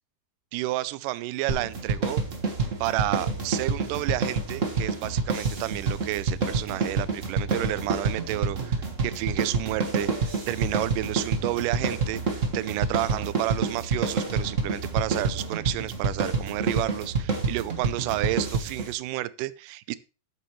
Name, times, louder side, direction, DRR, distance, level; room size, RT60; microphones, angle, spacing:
voice 1, 0.5-2.2 2.8-12.2 12.5-20.0, right 16 dB, 80° right, 17 dB, 2.2 m, -31 dB
sound 1, 1.5-18.9, right 4 dB, 50° right, 0.9 m, -28 dB
12.5 x 8.6 x 3.2 m, 0.32 s
omnidirectional pair, 3.8 m